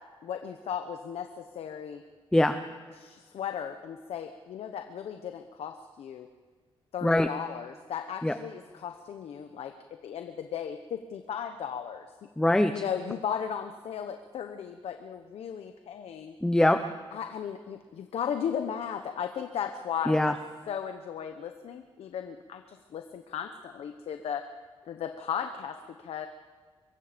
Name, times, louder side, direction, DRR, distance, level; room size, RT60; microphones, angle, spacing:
voice 1, 0.2-2.0 3.0-6.3 6.9-9.7 10.0-12.1 12.7-16.3 17.1-20.4 20.7-24.4 24.8-26.3, left 8 dB, 80° left, 7 dB, 1.0 m, -36 dB
voice 2, 12.4-12.8 16.4-16.8 20.1-20.4, left 1 dB, 5° left, 9 dB, 0.8 m, -22 dB
25.0 x 22.0 x 5.2 m, 1.5 s
cardioid pair, 115°, 10 cm